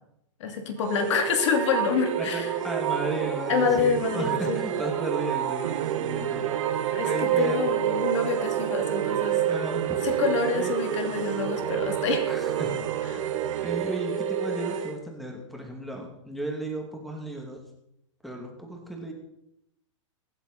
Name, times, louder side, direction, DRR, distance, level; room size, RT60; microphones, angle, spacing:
voice 1, 0.4-2.5 3.5-4.6 6.9-9.4 10.0-12.3, left 6 dB, 65° left, 5 dB, 2.7 m, -27 dB
sound 1, 0.8-15.0, right 9 dB, 75° right, 2.6 m, -29 dB
voice 2, 2.2-6.7 7.0-7.6 9.5-10.0 10.6-10.7 12.3-12.7 13.1-13.2 13.6-17.6 18.2-19.1, right 2 dB, ahead, 1 dB, 2.6 m, -34 dB
Musical instrument, 5.6-14.1, right 12 dB, 60° right, 0.6 m, -35 dB
23.5 x 8.2 x 4.2 m, 0.78 s
hypercardioid pair, 140°, 16 cm